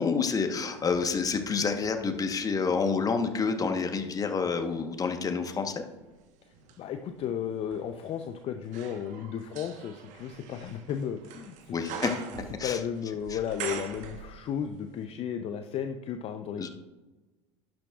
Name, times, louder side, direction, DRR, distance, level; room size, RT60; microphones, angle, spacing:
voice 1, 0.0-5.8 11.7-12.1 12.6-12.8 16.6-16.7, left 5 dB, 25° left, 6 dB, 1.1 m, -28 dB
sound 1, 0.7-2.9 3.4-14.7 15.0-15.1, right 7 dB, 50° right, 1.2 m, -45 dB
voice 2, 6.4-11.9 12.6-16.7, left 8 dB, 40° left, 7 dB, 0.6 m, -34 dB
12.0 x 8.9 x 2.4 m, 1.2 s
hypercardioid pair, 80°, 16 cm